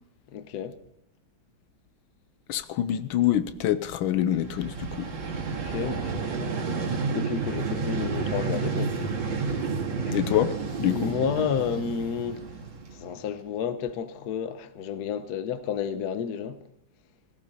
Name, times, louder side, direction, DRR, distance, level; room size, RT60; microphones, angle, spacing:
voice 1, 0.3-0.8 5.4-6.7 7.1-9.0 10.1-10.4 10.9-12.4 12.9-16.6, left 7 dB, 60° left, 1.3 m, -31 dB
voice 2, 2.5-5.1 10.1-11.1, left 11 dB, 85° left, 1.5 m, -26 dB
Vehicle, 4.3-13.3, right 4 dB, 70° right, 2.8 m, -31 dB
17.0 x 16.0 x 4.1 m
omnidirectional pair, 2.2 m